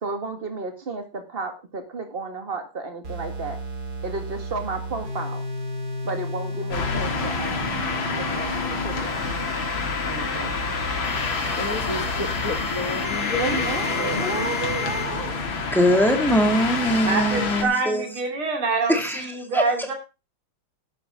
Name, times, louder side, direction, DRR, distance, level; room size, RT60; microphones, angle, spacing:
voice 1, 0.0-3.6 4.0-5.4 6.0-7.7 8.1-9.1 10.0-10.6 13.3-15.4, right 4 dB, 25° right, 5 dB, 2.2 m, -32 dB
sound 1, 3.0-15.0, left 1 dB, 50° right, 2.9 m, -34 dB
sound 2, 6.7-17.6, left 4 dB, 70° left, 2.6 m, -27 dB
voice 2, 11.6-13.7, left 3 dB, 45° left, 7 dB, 1.7 m, -31 dB
voice 3, 15.7-18.0 18.9-19.2 19.5-19.6, equal, ahead, 3 dB, 2.0 m, -21 dB
voice 4, 17.0-19.9, right 4 dB, 85° right, 3 dB, 3.7 m, -25 dB
11.5 x 11.0 x 3.8 m, 0.29 s
omnidirectional pair, 2.3 m